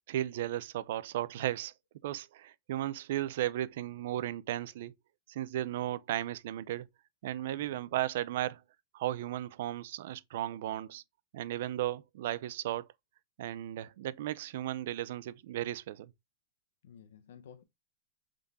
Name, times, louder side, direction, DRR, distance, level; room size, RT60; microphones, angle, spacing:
voice 1, 0.1-1.7 2.0-4.9 5.3-6.9 7.2-8.6 8.9-11.0 11.3-12.9 13.4-16.1, right 13 dB, 65° right, 0.4 m, -35 dB
voice 2, 16.8-17.6, left 8 dB, 85° left, 0.6 m, -53 dB
3.7 x 3.6 x 3.9 m
supercardioid pair, 155°, 0 cm